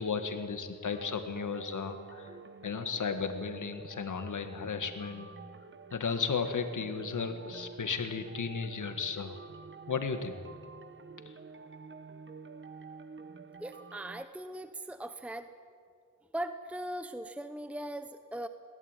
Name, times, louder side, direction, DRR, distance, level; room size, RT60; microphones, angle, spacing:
voice 1, 0.0-2.3 2.6-5.3 5.9-9.4 9.9-10.4, left 5 dB, 70° left, 7 dB, 2.0 m, -34 dB
sound 1, 0.9-14.2, right 5 dB, 40° right, 1.2 m, -49 dB
voice 2, 13.6-15.5 16.3-18.5, right 1 dB, 5° right, 10 dB, 0.8 m, -39 dB
22.0 x 17.0 x 9.3 m, 2.3 s
wide cardioid pair, 105°, 32 cm